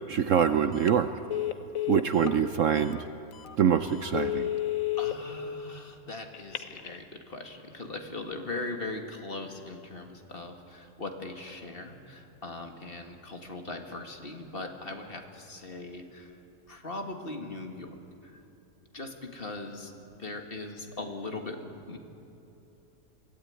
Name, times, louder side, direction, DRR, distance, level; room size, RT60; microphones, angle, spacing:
voice 1, 0.1-1.1 1.9-3.1 3.6-4.5, right 8 dB, 60° right, 10 dB, 0.9 m, -24 dB
Telephone, 0.7-1.0 1.3-2.4 2.9-3.0 3.4-3.6 4.0-5.1 6.3-7.0, left 13 dB, 60° left, 1.4 m, -31 dB
voice 2, 5.0-16.4 16.7-18.0 18.2-18.4 18.9-21.6 21.9-22.0, left 2 dB, 35° left, 4 dB, 2.0 m, -40 dB
23.5 x 16.5 x 9.5 m, 3.0 s
omnidirectional pair, 1.7 m